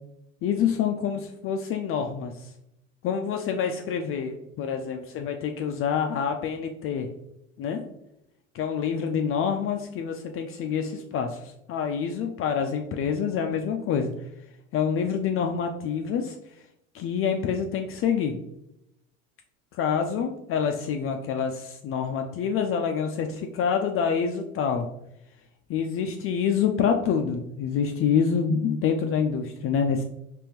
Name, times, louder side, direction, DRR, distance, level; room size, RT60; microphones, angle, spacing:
voice 1, 0.4-2.5 3.0-7.1 7.6-7.8 8.5-14.1 14.7-16.4 16.9-18.4 19.8-24.9 25.7-30.0, left 7 dB, 35° left, 5 dB, 0.4 m, -27 dB
3.5 x 3.2 x 2.9 m, 0.82 s
hypercardioid pair, 85°, 38 cm